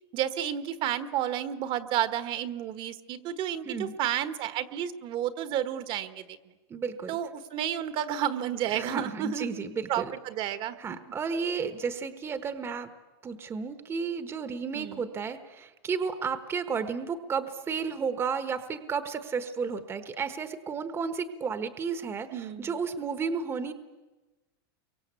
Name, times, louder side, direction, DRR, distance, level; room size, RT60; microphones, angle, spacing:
voice 1, 0.1-6.4 7.1-10.7 14.7-15.1 22.3-22.8, right 10 dB, 40° right, 11 dB, 1.4 m, -31 dB
voice 2, 6.7-7.2 8.7-10.1 10.8-12.9 13.2-23.7, right 5 dB, 20° right, 10 dB, 1.2 m, -32 dB
30.0 x 24.0 x 8.3 m, 1.2 s
supercardioid pair, 150°, 13 cm